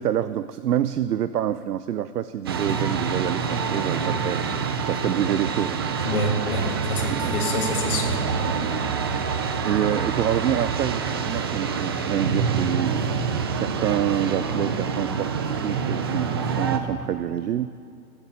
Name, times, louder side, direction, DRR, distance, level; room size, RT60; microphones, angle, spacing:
voice 1, 0.0-5.8 7.1-7.4 7.7-7.8 8.5-8.8 9.6-17.7, right 10 dB, 85° right, 14 dB, 0.6 m, -27 dB
sound 1, 2.5-16.8, right 5 dB, 20° right, 0.3 m, -26 dB
voice 2, 6.0-8.3, left 1 dB, 65° left, -1 dB, 3.1 m, -27 dB
15.0 x 8.9 x 8.6 m, 2.3 s
hypercardioid pair, 120°, 46 cm